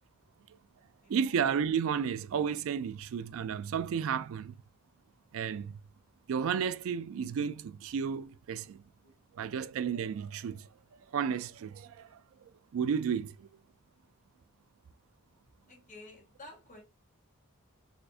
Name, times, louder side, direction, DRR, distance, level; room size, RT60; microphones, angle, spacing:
voice 1, 1.1-4.6 5.3-5.8 6.3-8.8 9.3-10.7 11.1-12.2 12.7-13.5, right 7 dB, 60° right, 0.3 m, -32 dB
voice 2, 15.7-16.8, left 2 dB, 35° left, 1.1 m, -51 dB
4.1 x 2.5 x 2.7 m
head